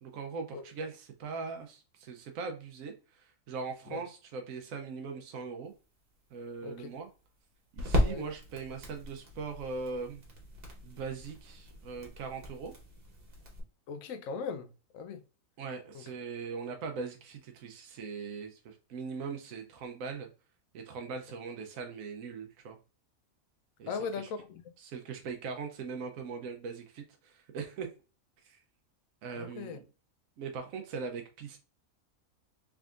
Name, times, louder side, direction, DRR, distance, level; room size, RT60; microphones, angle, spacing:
voice 1, 0.0-5.7 6.3-7.1 7.7-10.2 10.8-12.7 15.6-20.3 20.7-22.8 23.8-24.3 24.8-27.9 28.4-28.6 29.2-29.8 30.4-31.6, right 5 dB, 75° right, 1.0 m, -40 dB
sound 1, 5.7-13.6, equal, 45° right, 1.3 m, -36 dB
voice 2, 13.9-14.7 14.9-15.2 15.9-16.0 23.9-24.6 29.3-29.8, left 5 dB, 75° left, 1.0 m, -38 dB
3.6 x 3.5 x 2.4 m
omnidirectional pair, 1.5 m